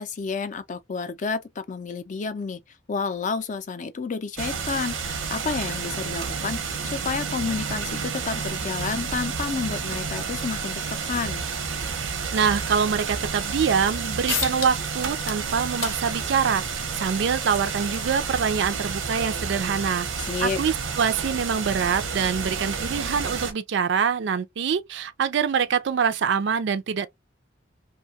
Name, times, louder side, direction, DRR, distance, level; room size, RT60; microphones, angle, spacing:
voice 1, 0.0-2.6 2.9-11.4 20.2-20.6, left 5 dB, 40° left, 0.4 m, -30 dB
sound 1, 4.4-23.5, right 5 dB, 90° right, 0.7 m, -30 dB
voice 2, 12.3-16.6 16.9-20.1 20.4-27.1, right 6 dB, 60° right, 0.4 m, -25 dB
sound 2, 14.3-14.9 15.2-20.3, left 7 dB, 80° left, 0.7 m, -37 dB
2.7 x 2.2 x 2.7 m
head